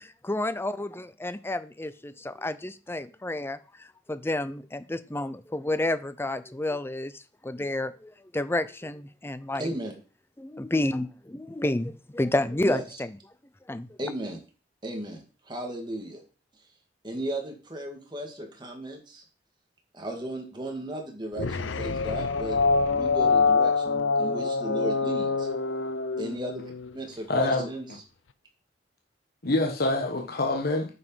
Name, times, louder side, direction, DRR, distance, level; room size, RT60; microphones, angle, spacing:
voice 1, 0.2-9.7 10.4-13.1 13.7-14.0, left 1 dB, 15° left, 0.5 m, -30 dB
voice 2, 9.6-9.9 12.7-12.8 14.0-14.4 14.8-16.2 17.0-19.2 19.9-25.5 26.2-26.6 26.9-27.9, right 1 dB, 25° right, 2.1 m, -35 dB
sound 1, 21.4-26.9, left 4 dB, 80° left, 0.7 m, -25 dB
voice 3, 27.3-27.7 29.4-30.9, left 2 dB, 55° left, 1.3 m, -25 dB
9.5 x 5.5 x 5.6 m
head